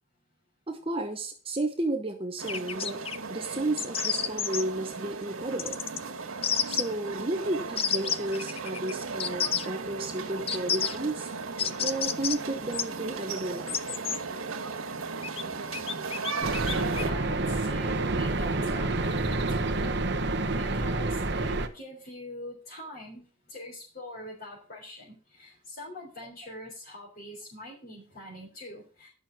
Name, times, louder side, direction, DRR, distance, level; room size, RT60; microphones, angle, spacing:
voice 1, 0.7-3.0 3.3-5.8 6.6-11.3 11.8-13.8, right 2 dB, 25° right, 4 dB, 0.9 m, -32 dB
sound 1, 2.4-17.1, right 4 dB, 85° right, 1.9 m, -36 dB
sound 2, 2.5-3.2 3.8-4.6 5.6-6.0 6.4-6.8 7.8-8.9 9.2-9.7 10.5-11.0 11.6-12.4 12.7-12.8 13.7-14.2 15.2-15.4 15.7-17.0, left 7 dB, 25° left, 0.5 m, -29 dB
voice 2, 16.4-19.9 20.4-29.1, left 1 dB, 45° left, -5 dB, 3.8 m, -44 dB
sound 3, 16.4-21.7, right 2 dB, 55° right, 1.1 m, -28 dB
11.0 x 6.3 x 6.0 m, 0.38 s
head